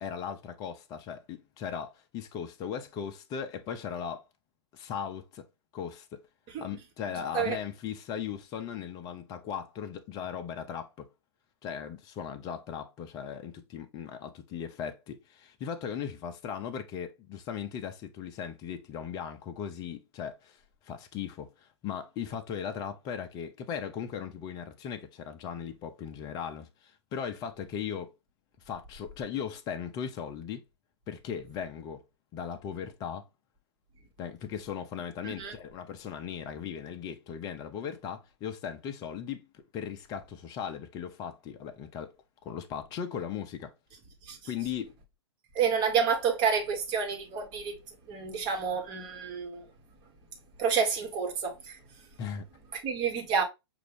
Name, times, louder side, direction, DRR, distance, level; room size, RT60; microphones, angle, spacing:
voice 1, 0.0-4.3 4.7-5.4 5.7-6.2 6.6-11.1 11.6-28.1 28.7-30.6 31.1-32.0 32.3-33.2 34.2-42.1 42.4-43.7 44.4-44.9 52.2-52.4, left 8 dB, 30° left, 0.7 m, -38 dB
voice 2, 45.5-47.7 48.1-49.6 50.6-51.8 52.8-53.4, right 6 dB, 35° right, 1.4 m, -29 dB
5.8 x 2.6 x 3.3 m
hypercardioid pair, 115°, 14 cm